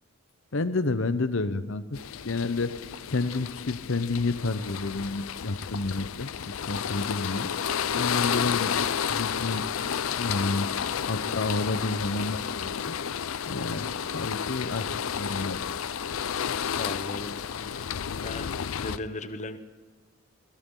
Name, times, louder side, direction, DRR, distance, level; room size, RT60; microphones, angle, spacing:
voice 1, 0.5-1.8 2.2-2.7 3.1-6.3 6.7-7.5 7.9-9.6 10.2-10.7 11.1-13.0 13.5-15.6, left 3 dB, 70° left, 12 dB, 0.9 m, -30 dB
sound 1, 1.9-19.0, left 8 dB, 85° left, 0.5 m, -31 dB
voice 2, 16.8-17.9 18.2-19.6, left 2 dB, 35° left, 9 dB, 1.1 m, -37 dB
21.0 x 17.0 x 3.9 m, 1.3 s
head